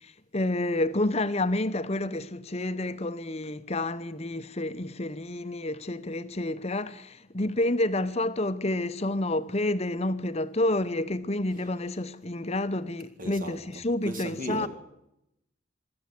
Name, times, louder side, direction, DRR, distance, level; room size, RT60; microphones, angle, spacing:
voice 1, 0.0-14.7, left 1 dB, 30° left, 0.8 m, -29 dB
voice 2, 13.2-14.7, right 1 dB, 40° right, 1.9 m, -37 dB
24.0 x 13.5 x 8.3 m
head